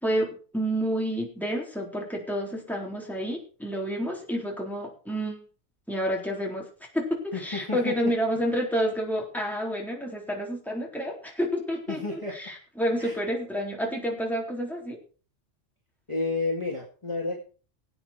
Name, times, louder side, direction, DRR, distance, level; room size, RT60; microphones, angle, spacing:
voice 1, 0.0-5.4 5.9-6.7 6.9-15.0, equal, ahead, -1 dB, 3.7 m, -29 dB
voice 2, 7.3-8.0 11.9-12.3 13.0-13.1 16.1-17.4, left 3 dB, 25° left, -2 dB, 2.3 m, -31 dB
18.5 x 8.8 x 4.5 m, 0.38 s
omnidirectional pair, 1.3 m